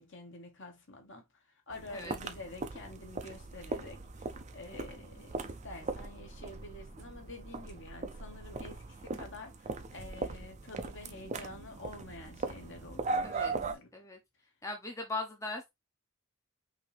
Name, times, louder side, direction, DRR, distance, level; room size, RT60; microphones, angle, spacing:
voice 1, 0.0-13.9, left 2 dB, 55° left, 1.4 m, -48 dB
sound 1, 1.7-13.7, right 3 dB, 30° right, 0.5 m, -39 dB
voice 2, 13.2-13.5 13.9-14.2 14.6-15.7, left 2 dB, 15° left, 0.7 m, -39 dB
5.7 x 2.8 x 3.3 m
head